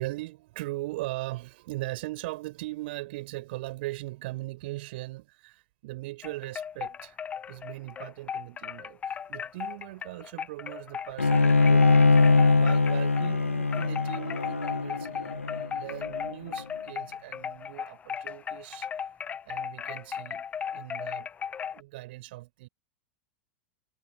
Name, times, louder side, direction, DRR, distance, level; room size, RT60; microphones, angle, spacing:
voice 1, 0.0-7.2 7.5-12.0 12.6-19.1 19.4-20.5 20.7-21.3 21.7-22.7, right 19 dB, 55° right, 5.2 m, -39 dB
sound 1, 6.2-13.4 13.7-21.8, left 7 dB, 20° left, 0.5 m, -36 dB
Bowed string instrument, 11.2-16.5, left 3 dB, 85° left, 0.4 m, -22 dB
figure-of-eight pair, 90°, 7 cm